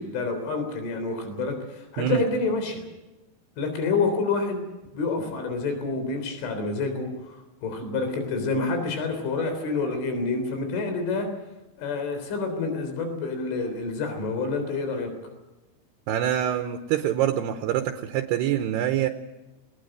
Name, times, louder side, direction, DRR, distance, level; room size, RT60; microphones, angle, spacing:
voice 1, 0.0-2.8 3.6-4.6 4.9-7.4 7.6-11.3 11.8-15.1, left 3 dB, 85° left, 7 dB, 6.1 m, -28 dB
voice 2, 16.1-19.1, right 11 dB, 75° right, 7 dB, 2.7 m, -25 dB
20.5 x 20.0 x 7.9 m, 1.1 s
omnidirectional pair, 5.4 m